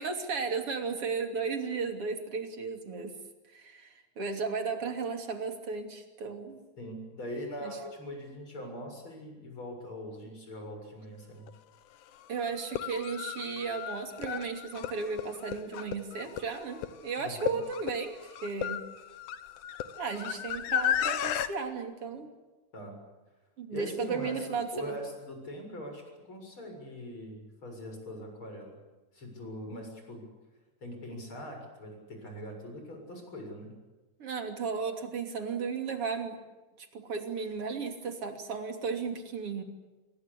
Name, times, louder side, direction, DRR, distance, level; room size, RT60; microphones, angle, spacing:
voice 1, 0.0-3.1 3.5-6.6 7.6-7.8 12.3-18.8 20.0-22.3 23.6-25.0 34.2-36.4 36.8-39.6, right 5 dB, 45° right, 5 dB, 3.7 m, -35 dB
voice 2, 6.8-11.5 17.2-17.6 22.7-23.0 23.7-28.7 29.1-30.2 30.8-33.7, equal, 40° left, 3 dB, 7.9 m, -42 dB
sound 1, 11.5-11.6 12.6-21.5, left 10 dB, 75° left, 2.7 m, -34 dB
26.5 x 23.5 x 8.5 m, 1.2 s
omnidirectional pair, 3.6 m